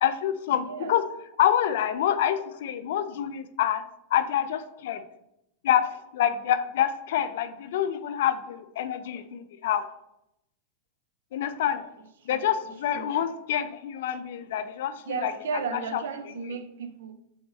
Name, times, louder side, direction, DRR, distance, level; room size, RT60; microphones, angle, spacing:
voice 1, 0.0-1.0 1.4-3.8 4.1-5.0 5.6-9.9 11.3-11.9 12.3-15.3 15.9-16.0, left 10 dB, 75° left, 0.4 m, -27 dB
voice 2, 0.5-0.9 12.3-12.5 12.9-13.2 15.1-17.1, right 5 dB, 85° right, 0.5 m, -34 dB
3.5 x 3.3 x 4.2 m
supercardioid pair, 130°, 0 cm